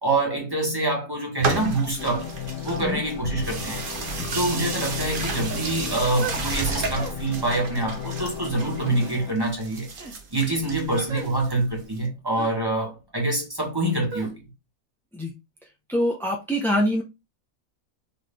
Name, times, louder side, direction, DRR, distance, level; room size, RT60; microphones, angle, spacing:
voice 1, 0.0-2.2 2.6-3.9 4.3-9.9 10.3-14.4, right 2 dB, 15° right, 1.6 m, -26 dB
sound 1, 1.4-12.0, right 3 dB, 45° right, 0.8 m, -33 dB
sound 2, 2.0-9.3, left 8 dB, 70° left, 1.5 m, -35 dB
sound 3, 5.2-5.5 6.2-6.5 6.9-7.2 8.1-8.3 8.9-9.1 9.9-10.2 11.1-11.3 12.3-12.6 14.1-14.3, right 3 dB, 60° right, 1.4 m, -36 dB
voice 2, 15.9-17.0, equal, 5° left, 0.3 m, -24 dB
3.9 x 3.5 x 3.6 m
omnidirectional pair, 1.6 m